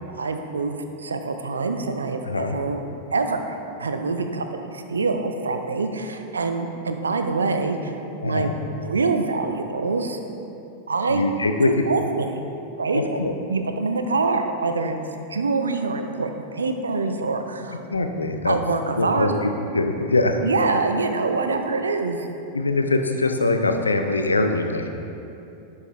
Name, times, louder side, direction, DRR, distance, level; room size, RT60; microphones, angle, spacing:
voice 1, 0.2-2.8 3.1-3.4 3.8-7.9 8.2-10.2 10.9-11.2 11.6-12.4 12.8-13.2 13.5-15.0 15.3-17.8 18.4-19.4 20.4-22.3, right 3 dB, 75° right, 6 dB, 0.5 m, -25 dB
voice 2, 2.2-2.6 8.2-8.5 11.1-11.7 12.9-13.3 17.9-18.5 19.0-20.5 22.5-24.9, left 2 dB, 80° left, 5 dB, 0.5 m, -23 dB
11.0 x 4.8 x 3.2 m, 2.7 s
figure-of-eight pair, 90°, 0 cm